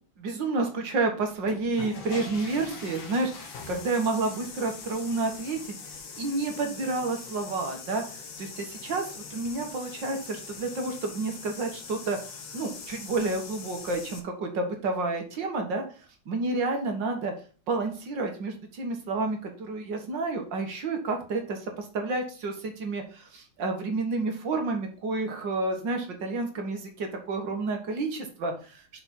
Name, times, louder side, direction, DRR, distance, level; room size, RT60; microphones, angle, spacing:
voice 1, 0.2-15.9 16.3-17.3 17.7-28.8, right 3 dB, 60° right, 4 dB, 2.2 m, -30 dB
sound 1, 1.3-14.2, left 5 dB, 65° left, 2.0 m, -42 dB
7.0 x 5.4 x 4.3 m, 0.39 s
omnidirectional pair, 2.4 m